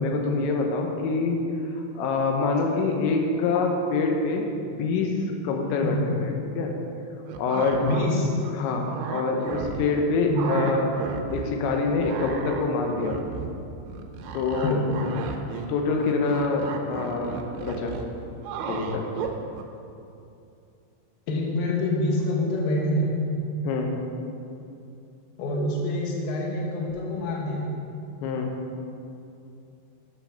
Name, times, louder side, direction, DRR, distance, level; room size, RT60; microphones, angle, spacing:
voice 1, 0.0-1.4 2.0-5.1 5.4-6.7 7.4-7.8 8.5-11.0 11.3-13.2 14.3-14.8 15.7-18.0 18.7-19.0 23.6-23.9 28.2-28.5, left 3 dB, 90° left, 2 dB, 3.2 m, -25 dB
sound 1, 7.3-8.1 8.4-10.0 10.3-11.5 11.8-19.6, right 5 dB, 85° right, 3.1 m, -34 dB
voice 2, 7.8-8.3 10.3-10.6 14.6-14.9 21.3-23.1 25.4-27.7, left 1 dB, 65° left, -2 dB, 2.7 m, -26 dB
9.6 x 6.1 x 5.7 m, 2.6 s
omnidirectional pair, 5.1 m